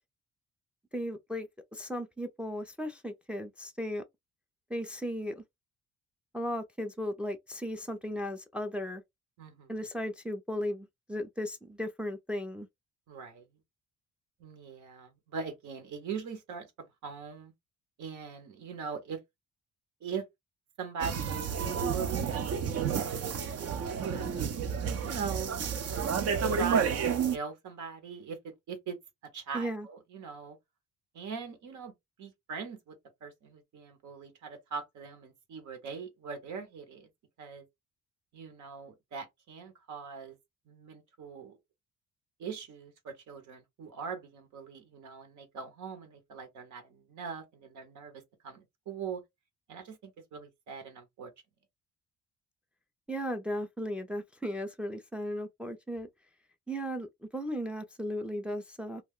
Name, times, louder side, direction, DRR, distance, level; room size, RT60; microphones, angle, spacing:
voice 1, 0.9-4.0 4.7-5.4 6.3-9.0 9.7-12.7 29.5-29.9 53.1-56.1 56.7-59.0, equal, 5° right, 0.4 m, -36 dB
voice 2, 9.4-9.7 13.1-13.5 14.4-16.7 17.0-17.5 18.0-19.2 20.0-20.3 20.8-22.4 22.9-24.5 25.0-25.6 26.4-29.0 29.3-30.6 31.1-31.9 32.2-33.0 33.2-37.1 37.4-37.7 38.3-40.4 40.7-41.6 42.4-49.2 49.7-51.3, right 6 dB, 70° right, 1.0 m, -41 dB
sound 1, 21.0-27.4, right 6 dB, 55° right, 0.6 m, -30 dB
2.3 x 2.1 x 3.5 m
cardioid pair, 90°, 30 cm